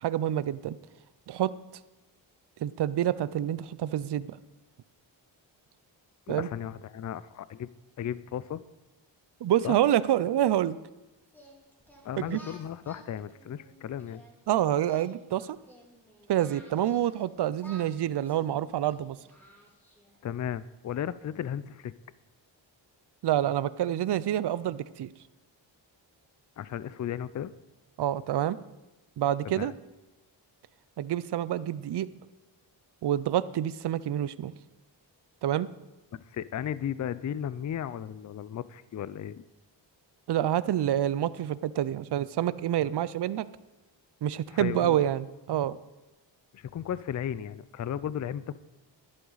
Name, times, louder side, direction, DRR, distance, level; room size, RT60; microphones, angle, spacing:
voice 1, 0.0-0.8 1.3-1.5 2.6-4.4 6.3-6.5 9.4-10.8 12.2-12.4 14.5-15.6 16.3-19.2 23.2-25.1 28.0-28.6 29.2-29.7 31.0-32.1 33.0-34.5 35.4-35.7 40.3-43.5 44.2-45.8, right 11 dB, 60° right, 17 dB, 0.6 m, -27 dB
voice 2, 6.3-7.7 8.0-8.6 9.6-9.8 12.0-14.2 20.2-21.9 26.6-27.5 29.6-29.7 36.1-39.4 44.6-45.0 46.5-48.5, left 9 dB, 40° left, 17 dB, 0.5 m, -35 dB
Singing, 11.3-14.3 14.7-17.2 17.6-20.2, equal, 5° left, 3.4 m, -53 dB
11.0 x 11.0 x 4.0 m, 1.0 s
cardioid pair, 70°, 46 cm